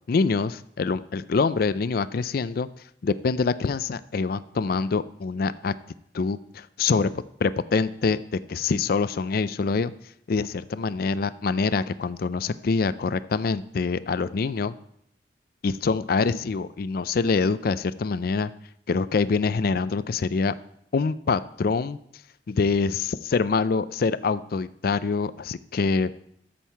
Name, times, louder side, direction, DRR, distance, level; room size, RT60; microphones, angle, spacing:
voice 1, 0.1-2.7 3.0-5.7 6.1-9.9 10.3-14.7 15.6-18.5 18.9-20.5 20.9-22.0 22.5-26.1, left 4 dB, 55° left, 15 dB, 0.4 m, -25 dB
12.5 x 7.5 x 4.6 m, 0.72 s
head